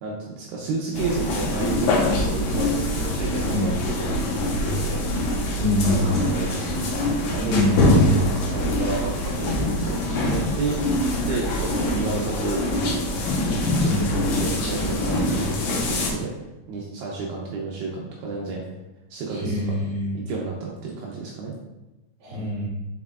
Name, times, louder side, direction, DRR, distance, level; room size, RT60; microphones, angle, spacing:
voice 1, 0.0-5.0 5.8-6.8 7.3-10.9 11.3-12.8 13.4-16.3 16.7-18.6 19.1-19.6 20.1-21.5, right 3 dB, 80° right, -2 dB, 2.4 m, -31 dB
sound 1, 0.9-16.1, left 1 dB, 75° left, 2.1 m, -24 dB
voice 2, 5.6-6.2 7.5-8.0 13.8-14.1 19.3-20.1 22.2-22.7, left 1 dB, 60° right, -8 dB, 1.1 m, -24 dB
7.0 x 5.8 x 2.4 m, 1.0 s
omnidirectional pair, 5.4 m